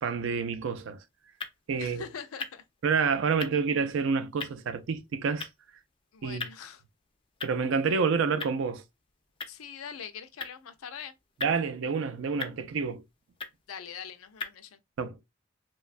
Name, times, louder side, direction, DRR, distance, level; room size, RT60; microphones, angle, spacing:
voice 1, 0.0-1.0 1.7-2.0 2.8-5.5 6.2-6.4 7.4-8.8 11.4-13.0 15.0-15.2, right 5 dB, 65° right, 0.4 m, -28 dB
sound 1, 0.6-14.6, left 4 dB, 25° left, 0.4 m, -45 dB
voice 2, 1.8-2.6 6.1-6.8 9.5-11.1 13.7-14.8, left 7 dB, 85° left, 0.4 m, -42 dB
3.0 x 2.2 x 2.4 m
head